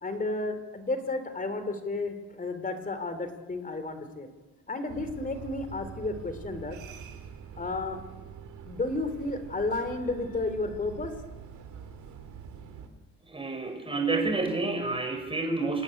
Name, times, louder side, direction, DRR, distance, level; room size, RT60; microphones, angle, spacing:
voice 1, 0.0-4.3 4.7-6.8 7.6-8.0 8.6-11.1, left 2 dB, 25° left, 9 dB, 3.3 m, -32 dB
sound 1, 4.9-12.9, right 7 dB, 70° right, 2.6 m, -45 dB
voice 2, 13.2-15.8, right 3 dB, 20° right, 4 dB, 5.6 m, -29 dB
27.0 x 9.8 x 10.0 m, 1.1 s
cardioid pair, 90°, 30 cm